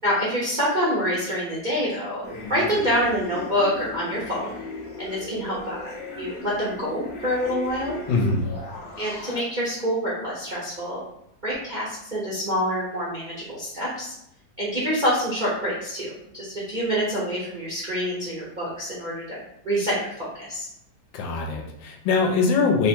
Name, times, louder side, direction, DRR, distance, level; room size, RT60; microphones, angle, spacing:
voice 1, 0.0-2.2 2.5-4.6 5.0-7.9 9.0-11.0 11.4-14.1 14.6-19.4 19.6-20.7, equal, 50° right, -8 dB, 0.5 m, -26 dB
sound 1, 2.2-9.4, left 2 dB, 55° left, 0.7 m, -37 dB
voice 2, 8.1-8.4 21.1-22.9, left 4 dB, 80° left, 1 dB, 1.4 m, -22 dB
3.4 x 2.1 x 4.3 m, 0.77 s
omnidirectional pair, 2.1 m